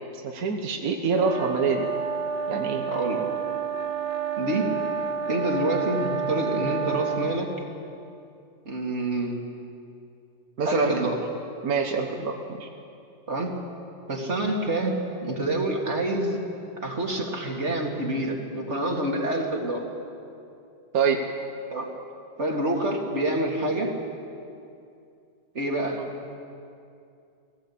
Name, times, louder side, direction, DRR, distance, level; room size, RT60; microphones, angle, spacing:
voice 1, 0.2-1.9 2.5-2.8 10.6-11.1 11.6-12.7 20.9-21.2, right 5 dB, 55° right, 2 dB, 1.6 m, -25 dB
sound 1, 1.2-7.4, right 6 dB, 70° right, 2.1 m, -30 dB
voice 2, 2.9-3.2 4.4-4.8 5.3-7.5 8.7-9.4 10.7-11.2 13.3-13.5 14.1-16.4 16.8-19.9 21.7-21.9 22.4-23.9 25.5-26.0, right 1 dB, 40° right, 0 dB, 2.6 m, -27 dB
19.5 x 17.0 x 8.6 m, 2.5 s
omnidirectional pair, 1.9 m